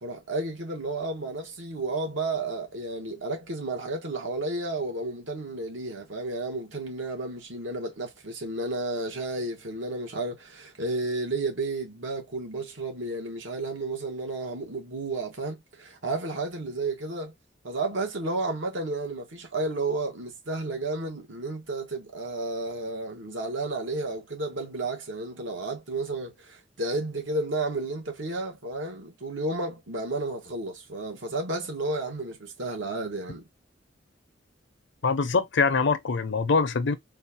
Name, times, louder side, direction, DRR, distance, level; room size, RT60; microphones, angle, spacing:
voice 1, 0.0-17.3 17.6-33.5, right 2 dB, 80° right, 1.4 m, -32 dB
voice 2, 35.0-36.9, left 4 dB, 70° left, 0.6 m, -24 dB
4.3 x 2.4 x 2.7 m
head